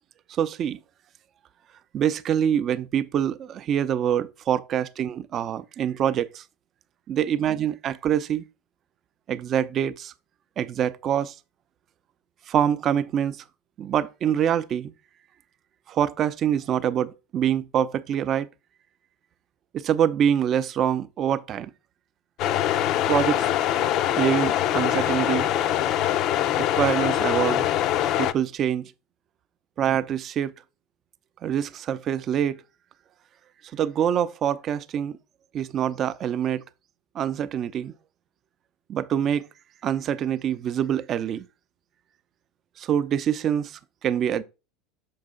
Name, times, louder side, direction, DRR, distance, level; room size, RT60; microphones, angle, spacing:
voice 1, 0.3-0.8 1.9-6.4 7.1-8.4 9.3-10.1 10.6-11.4 12.5-13.4 13.8-14.9 15.9-18.5 19.7-21.7 23.1-23.5 24.2-25.5 26.6-27.7 28.2-28.8 29.8-30.5 31.4-32.6 33.7-35.2 35.5-36.6 37.1-37.9 38.9-39.4 39.8-41.4 42.8-44.4, right 9 dB, 45° right, 0.5 m, -25 dB
sound 1, 22.4-28.3, left 12 dB, 55° left, 0.4 m, -23 dB
6.6 x 4.6 x 3.7 m
hypercardioid pair, 75°, 0 cm